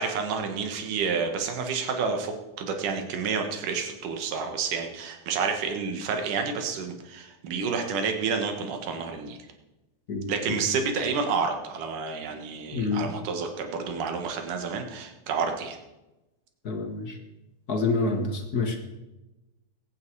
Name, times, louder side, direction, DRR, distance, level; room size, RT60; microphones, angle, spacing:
voice 1, 0.0-9.4 10.3-15.8, right 5 dB, 80° right, 5 dB, 3.1 m, -29 dB
voice 2, 10.1-10.6 12.7-13.0 16.6-17.1 17.7-18.8, left 3 dB, 35° left, 4 dB, 1.7 m, -27 dB
21.0 x 9.1 x 4.7 m, 1.0 s
omnidirectional pair, 3.6 m